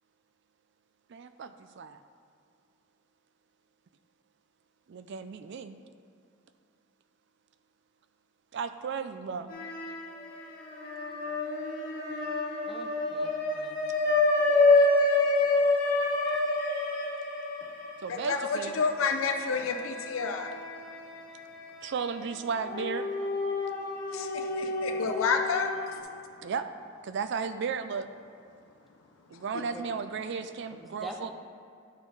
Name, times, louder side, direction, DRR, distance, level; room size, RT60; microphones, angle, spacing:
voice 1, 1.1-2.0 4.9-5.8 8.5-9.5 18.0-18.8 21.8-23.1 26.4-26.7 27.0-28.1 29.3-31.3, right 5 dB, 60° right, 10 dB, 0.4 m, -34 dB
sound 1, 9.5-10.3 10.6-21.0 21.4-21.5 22.6-26.0, left 2 dB, 45° left, 1.4 m, -28 dB
voice 2, 12.7-13.8 29.6-29.9 30.7-31.3, right 1 dB, ahead, 1 dB, 0.7 m, -45 dB
voice 3, 18.1-20.5 24.1-26.0, left 5 dB, 85° left, 4 dB, 0.5 m, -30 dB
11.5 x 4.4 x 4.7 m, 2.4 s
head